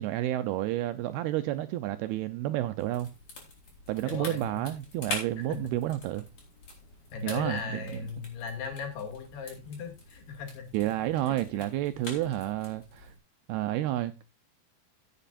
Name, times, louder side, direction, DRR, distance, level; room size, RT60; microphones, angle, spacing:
voice 1, 0.0-3.1 3.9-6.3 7.2-7.8 10.7-13.1 13.5-14.1, right 14 dB, 80° right, 2.3 m, -30 dB
sound 1, 2.7-13.2, left 2 dB, 40° left, 5.2 m, -45 dB
voice 2, 4.0-4.7 5.4-5.6 7.1-10.9 11.2-11.4 12.1-12.3, left 5 dB, 65° left, 4.3 m, -38 dB
17.0 x 8.3 x 2.5 m
omnidirectional pair, 5.1 m